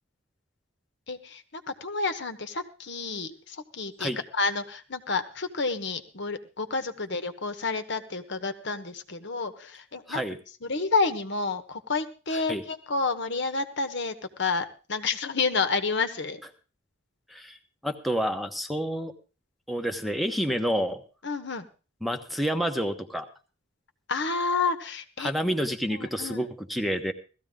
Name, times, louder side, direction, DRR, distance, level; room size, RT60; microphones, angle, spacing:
voice 1, 1.1-10.2 10.6-16.4 21.2-21.7 24.1-25.3 25.9-26.4, left 4 dB, 60° left, 8 dB, 1.3 m, -30 dB
voice 2, 12.3-12.6 17.3-19.1 19.7-21.0 22.0-23.3 25.2-27.1, equal, ahead, 4 dB, 1.1 m, -29 dB
17.0 x 14.0 x 3.7 m, 0.35 s
head